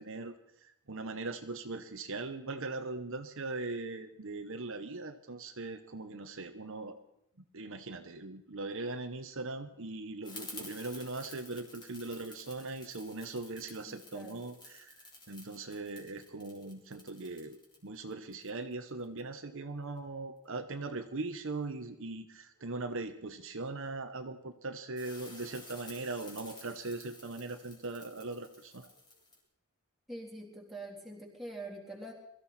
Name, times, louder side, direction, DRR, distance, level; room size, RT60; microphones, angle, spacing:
voice 1, 0.0-7.0 7.5-28.9, right 3 dB, 60° right, 7 dB, 1.0 m, -40 dB
sound 1, 10.2-19.2 25.0-29.4, left 2 dB, 20° left, 3.7 m, -52 dB
voice 2, 13.9-14.4 30.1-32.1, right 1 dB, ahead, -3 dB, 3.6 m, -45 dB
22.5 x 14.0 x 4.3 m, 0.77 s
head